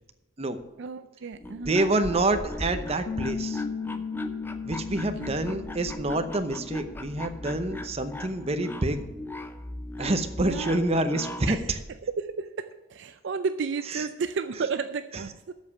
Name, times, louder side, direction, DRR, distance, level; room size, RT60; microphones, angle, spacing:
voice 1, 0.8-1.9 4.9-5.6 10.4-11.0 11.5-11.7 12.0-15.5, right 5 dB, 60° right, 10 dB, 0.4 m, -33 dB
sound 1, 1.3-11.6, left 1 dB, 10° left, 0.6 m, -38 dB
voice 2, 1.6-3.6 4.6-9.0 10.0-11.6 13.9-14.0, right 2 dB, 30° right, 8 dB, 0.8 m, -27 dB
Bass guitar, 3.1-9.3, left 6 dB, 60° left, 0.9 m, -38 dB
8.0 x 7.1 x 8.3 m, 1.1 s
head